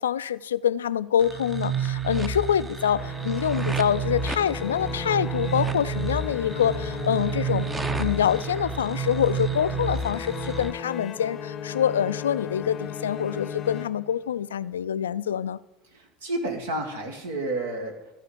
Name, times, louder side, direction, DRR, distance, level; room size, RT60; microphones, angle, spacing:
voice 1, 0.0-7.7 8.0-15.6, left 9 dB, 75° left, 0.3 m, -25 dB
sound 1, 1.2-10.7, right 6 dB, 20° right, 0.8 m, -30 dB
sound 2, 3.0-14.4, left 8 dB, 40° left, 0.7 m, -36 dB
voice 2, 15.9-18.1, right 2 dB, 70° right, 1.9 m, -31 dB
14.5 x 4.8 x 8.3 m
figure-of-eight pair, 70°, 0 cm